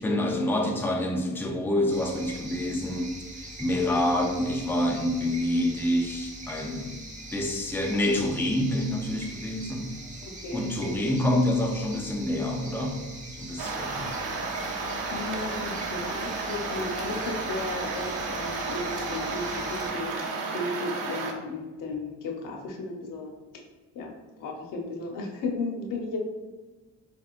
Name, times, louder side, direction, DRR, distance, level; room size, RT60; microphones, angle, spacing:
voice 1, 0.0-7.0 7.3-9.9 10.5-13.1 13.4-14.1, left 1 dB, 5° left, 2 dB, 0.5 m, -27 dB
sound 1, 1.9-19.9, right 1 dB, 25° right, 1.1 m, -42 dB
voice 2, 3.7-4.2 10.4-11.0 15.1-20.1 20.5-23.4 23.9-26.2, left 3 dB, 90° left, 1 dB, 0.9 m, -35 dB
sound 2, 13.6-21.3, right 3 dB, 80° right, 0.8 m, -32 dB
4.7 x 3.5 x 2.5 m, 1.2 s
cardioid pair, 115°, 31 cm